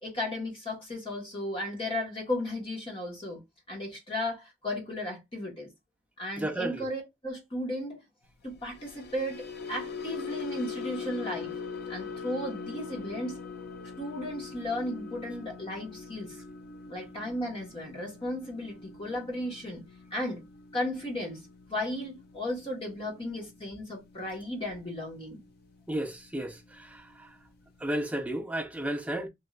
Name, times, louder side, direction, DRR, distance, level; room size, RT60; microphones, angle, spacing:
voice 1, 0.0-3.4 3.7-5.7 6.2-8.0 8.4-11.5 11.9-13.4 14.0-16.4 16.9-19.8 20.1-20.4 20.7-21.4 21.7-25.4, left 1 dB, 30° left, 1.4 m, -35 dB
voice 2, 6.4-6.9 25.9-27.0 27.8-29.3, right 1 dB, 5° right, 0.5 m, -33 dB
sound 1, 8.6-25.0 25.3-25.6 26.0-26.2, left 5 dB, 55° left, 0.5 m, -42 dB
3.2 x 2.8 x 2.4 m
head